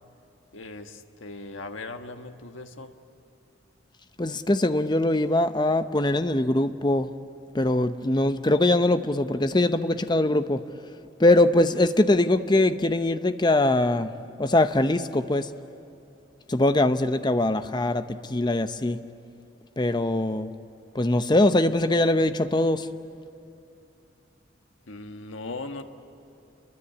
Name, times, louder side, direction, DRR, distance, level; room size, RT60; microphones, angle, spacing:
voice 1, 0.5-2.9 24.9-25.8, left 3 dB, 85° left, 6 dB, 1.5 m, -38 dB
voice 2, 4.2-7.1 7.5-10.6 11.2-14.1 14.4-15.5 16.5-19.0 19.8-20.5 20.9-22.9, left 1 dB, 20° left, 10 dB, 0.8 m, -22 dB
29.5 x 23.0 x 8.4 m, 2.8 s
head